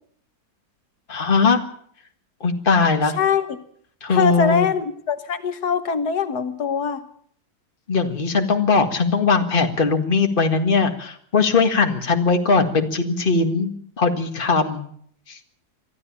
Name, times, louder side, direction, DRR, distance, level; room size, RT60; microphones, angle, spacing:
voice 1, 1.1-1.6 2.4-3.1 4.0-4.7 7.9-13.7 14.0-14.9 15.3-15.4, left 4 dB, 35° left, 5 dB, 2.0 m, -20 dB
voice 2, 3.1-3.6 4.1-7.0, left 6 dB, 80° left, 9 dB, 1.8 m, -22 dB
23.5 x 13.5 x 8.7 m, 0.63 s
omnidirectional pair, 1.7 m